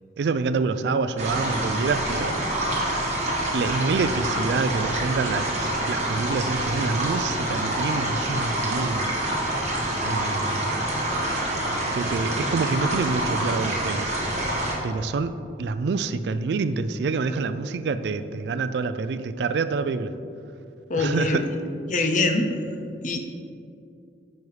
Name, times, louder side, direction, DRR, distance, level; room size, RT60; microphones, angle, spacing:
voice 1, 0.2-2.4 3.5-5.5 5.9-9.1 10.0-10.7 11.9-14.1 14.8-15.3 15.6-20.1 20.9-21.4, right 4 dB, 70° right, 12 dB, 0.3 m, -27 dB
sound 1, 1.2-14.8, right 1 dB, 40° right, 1.4 m, -26 dB
voice 2, 20.9-21.4 21.9-22.5 23.0-23.2, left 2 dB, 45° left, 5 dB, 0.6 m, -23 dB
9.2 x 5.4 x 3.3 m, 2.6 s
head